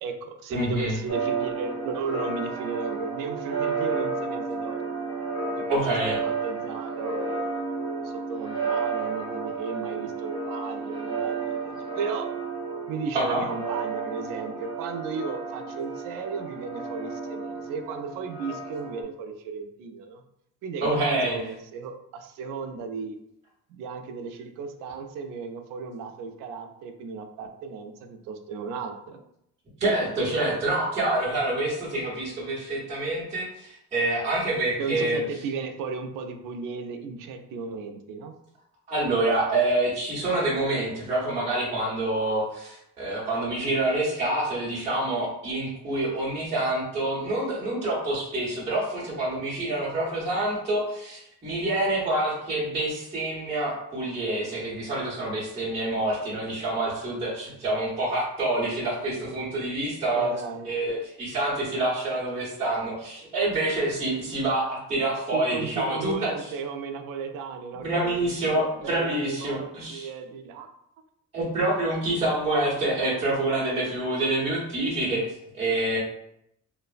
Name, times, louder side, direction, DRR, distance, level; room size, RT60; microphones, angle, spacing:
voice 1, 0.0-4.8 5.6-7.6 8.0-12.3 12.9-20.2 20.6-23.2 23.7-29.2 34.8-38.3 60.1-60.7 65.3-70.7 71.6-71.7, right 5 dB, 85° right, 6 dB, 0.5 m, -35 dB
voice 2, 0.5-1.0 5.7-6.2 13.1-13.4 20.8-21.4 29.8-35.2 38.9-60.3 60.6-66.5 67.8-70.1 71.3-76.0, right 2 dB, 20° right, -9 dB, 0.9 m, -27 dB
sound 1, 1.1-19.0, right 4 dB, 15° left, 0.8 m, -32 dB
3.1 x 2.1 x 2.4 m, 0.76 s
cardioid pair, 145°, 32 cm